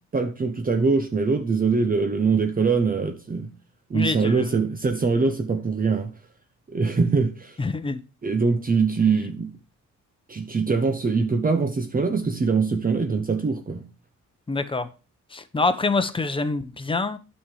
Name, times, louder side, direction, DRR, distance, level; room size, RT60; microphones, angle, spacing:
voice 1, 0.1-3.5 3.9-6.1 6.7-7.6 8.2-9.5 10.3-13.8, right 4 dB, 30° right, 1.0 m, -23 dB
voice 2, 3.9-4.6 7.6-8.0 14.5-14.9 15.3-17.2, left 3 dB, 15° left, 1.0 m, -26 dB
8.7 x 5.7 x 4.9 m
cardioid pair, 90°, 30 cm